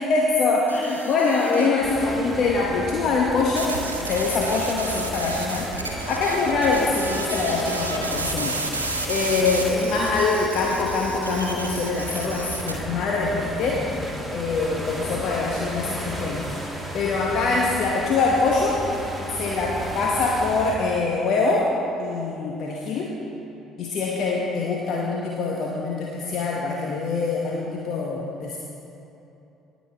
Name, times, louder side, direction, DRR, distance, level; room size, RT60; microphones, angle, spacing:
voice 1, 0.0-3.7 4.1-8.6 9.1-13.9 14.3-16.5 16.9-18.8 19.3-21.7 22.0-23.1 23.8-28.6, left 3 dB, 50° left, -2 dB, 1.0 m, -24 dB
sound 1, 0.7-1.8 3.5-12.7, right 2 dB, 85° right, 0.7 m, -32 dB
sound 2, 1.8-20.8, equal, ahead, 1.9 m, -34 dB
18.5 x 7.5 x 3.7 m, 3.0 s
figure-of-eight pair, 50°, 0 cm